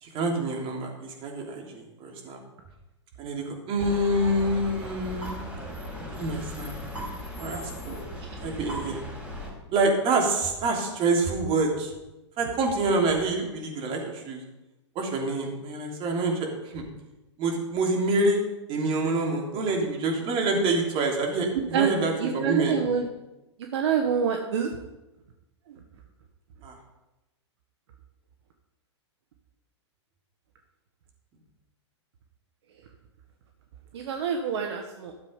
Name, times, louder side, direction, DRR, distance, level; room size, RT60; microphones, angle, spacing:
voice 1, 0.0-2.4 3.2-5.3 6.1-6.7 7.4-8.0 8.4-9.0 9.7-12.0 12.4-14.4 14.9-16.8 17.4-18.4 18.7-22.8 26.6-26.8, right 2 dB, 35° right, 1 dB, 3.1 m, -27 dB
sound 1, 3.8-9.5, equal, 5° right, 4.7 m, -37 dB
voice 2, 22.2-23.1 23.7-24.7 33.9-35.1, right 7 dB, 65° right, 3 dB, 1.3 m, -26 dB
13.0 x 7.5 x 5.2 m, 1.0 s
hypercardioid pair, 115°, 15 cm